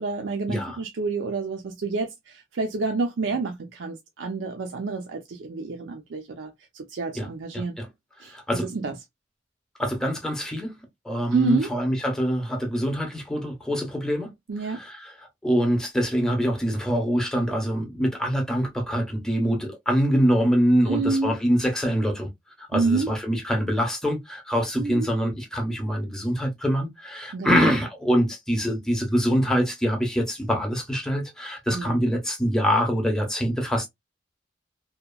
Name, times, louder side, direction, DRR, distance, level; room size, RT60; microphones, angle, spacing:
voice 1, 0.0-7.8 8.2-9.0 11.3-11.7 14.5-14.8 20.9-21.4 22.7-23.1 24.8-25.1 27.3-27.7 31.7-32.1, right 4 dB, 85° right, 0.5 m, -28 dB
voice 2, 7.5-7.9 8.3-8.7 9.8-10.7 11.0-14.3 14.8-15.0 15.4-22.3 22.7-33.9, equal, 5° left, 0.6 m, -24 dB
2.8 x 2.2 x 2.2 m
head